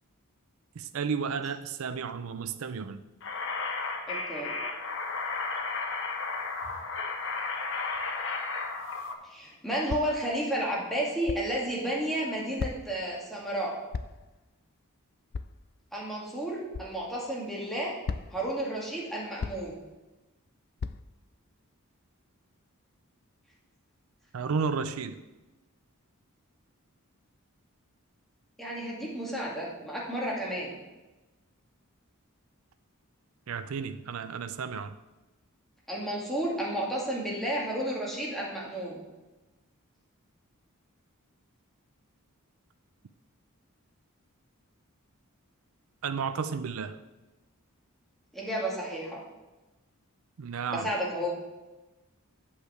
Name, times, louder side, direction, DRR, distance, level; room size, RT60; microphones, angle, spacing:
voice 1, 0.8-3.0 24.3-25.2 33.5-34.9 46.0-46.9 50.4-50.9, right 5 dB, 65° right, 10 dB, 0.5 m, -32 dB
sound 1, 3.2-9.1, left 4 dB, 60° left, 1.1 m, -33 dB
voice 2, 4.1-4.5 9.2-13.7 15.9-18.0 18.3-19.8 28.6-30.8 35.9-39.0 48.3-49.2 50.7-51.3, right 1 dB, ahead, -5 dB, 2.2 m, -32 dB
sound 2, 9.9-10.3 11.3-11.5 12.6-13.0 13.9-14.3 15.3-15.5 16.7-16.9 18.1-18.5 19.4-19.8 20.8-21.0, left 5 dB, 45° left, 0.3 m, -35 dB
8.5 x 5.4 x 7.9 m, 1.1 s
head